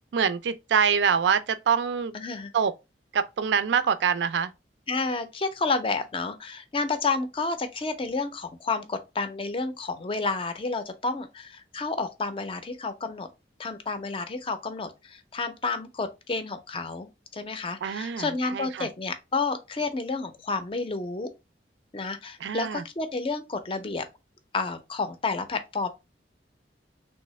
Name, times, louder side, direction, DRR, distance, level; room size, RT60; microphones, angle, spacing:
voice 1, 0.1-2.1 2.5-2.7 3.1-4.5 17.8-18.9 22.4-22.8, right 6 dB, 75° right, 0.4 m, -25 dB
voice 2, 2.1-2.5 4.9-13.3 13.6-21.3 21.9-24.1 24.5-25.9, left 3 dB, 30° left, 0.4 m, -30 dB
3.3 x 2.7 x 3.0 m
head